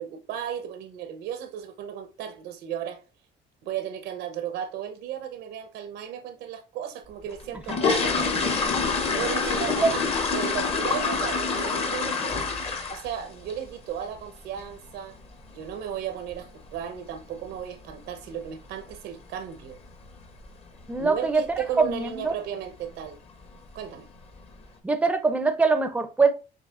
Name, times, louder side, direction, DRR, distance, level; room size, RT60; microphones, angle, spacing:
voice 1, 0.0-3.0 3.6-8.6 9.1-12.4 12.9-15.2 15.5-19.8 21.0-23.2 23.7-24.1, right 9 dB, 90° right, 0.8 m, -35 dB
sound 1, 7.3-13.2 13.5-13.8 14.1-14.2 14.6-14.7 15.1-15.3 15.6-15.7 16.3-16.4 16.6-16.8 17.3-17.6 17.9-18.0 18.4-18.6 18.9-19.0 19.4-19.5 20.2-20.5 20.8-21.1 21.5-21.6 22.0-22.1 22.9-23.0 23.4-23.9 24.4-24.5, left 4 dB, 35° left, 0.9 m, -26 dB
voice 2, 20.9-21.4 21.8-22.3 24.8-26.3, right 4 dB, 10° right, 0.5 m, -22 dB
7.7 x 2.9 x 2.4 m
cardioid pair, 110°, 17 cm